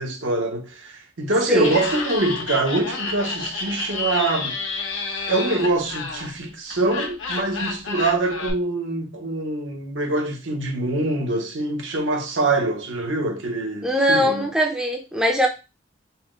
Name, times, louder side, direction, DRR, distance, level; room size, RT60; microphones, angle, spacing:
voice 1, 0.0-4.6 5.3-14.5, right 2 dB, 70° right, 0.9 m, -24 dB
voice 2, 1.5-1.8 13.8-15.5, equal, 5° right, 0.5 m, -21 dB
Laughter, 1.6-8.5, left 4 dB, 85° left, 0.9 m, -30 dB
4.2 x 2.1 x 3.7 m
head